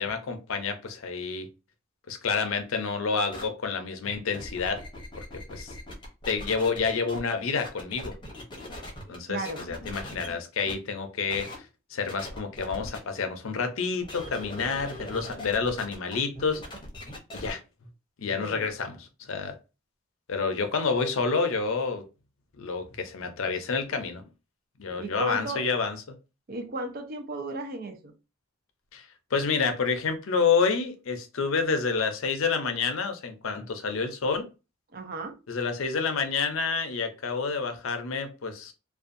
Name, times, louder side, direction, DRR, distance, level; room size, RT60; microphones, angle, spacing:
voice 1, 0.0-1.5 2.1-4.8 5.5-5.7 6.3-8.1 9.1-11.5 11.9-16.6 17.3-17.6 18.2-19.6 20.3-22.0 22.6-24.3 24.8-26.0 28.9-29.1 29.3-34.5 35.5-38.7, left 5 dB, 70° left, 0.5 m, -28 dB
sound 1, 3.3-3.5 4.1-7.2 7.6-9.2 9.4-10.3 10.7-10.8 11.3-11.6 12.1-13.0 14.0-17.5, left 1 dB, 25° left, 0.7 m, -41 dB
voice 2, 9.3-9.6 18.3-18.6 25.0-25.6 26.5-28.1 34.9-35.4, right 1 dB, 45° right, 0.5 m, -35 dB
2.5 x 2.2 x 2.5 m
head